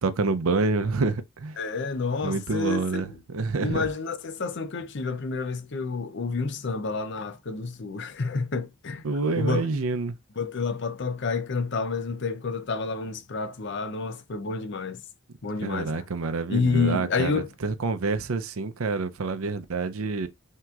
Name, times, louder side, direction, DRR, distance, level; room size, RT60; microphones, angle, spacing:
voice 1, 0.0-1.6 2.2-3.9 9.0-10.2 15.6-20.3, right 3 dB, 80° right, 0.6 m, -27 dB
voice 2, 1.6-3.0 3.6-9.1 9.4-9.7 10.4-15.0 15.4-16.0 16.5-17.5, left 4 dB, 55° left, 0.6 m, -29 dB
5.9 x 2.9 x 2.4 m
head